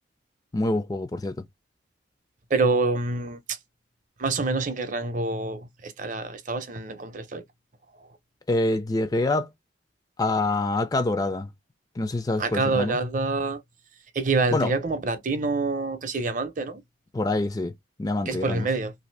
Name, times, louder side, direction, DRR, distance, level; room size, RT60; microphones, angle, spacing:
voice 1, 0.5-1.4 8.5-9.5 10.2-11.5 12.0-13.0 14.5-14.7 17.1-17.7 18.0-18.7, left 2 dB, 20° left, 0.3 m, -25 dB
voice 2, 2.5-3.6 4.2-7.4 12.4-13.6 14.1-16.8 18.3-18.9, right 3 dB, 45° right, 0.6 m, -26 dB
2.8 x 2.6 x 3.2 m
head